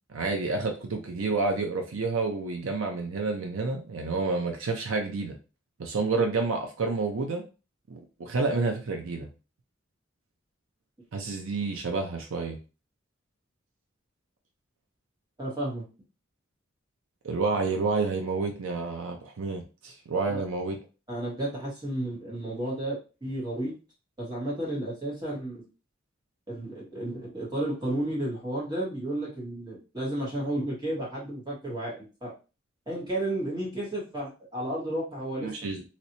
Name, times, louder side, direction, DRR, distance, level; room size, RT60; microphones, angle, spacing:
voice 1, 0.1-5.3 5.8-7.5 7.9-9.3 11.1-12.6 17.2-20.8 35.4-35.8, right 3 dB, 85° right, 3 dB, 0.6 m, -29 dB
voice 2, 15.4-15.8 20.3-20.4 21.1-23.7 24.2-25.6 26.5-32.3 32.9-35.5, right 1 dB, 20° right, -5 dB, 1.6 m, -32 dB
3.1 x 2.9 x 2.8 m, 0.32 s
head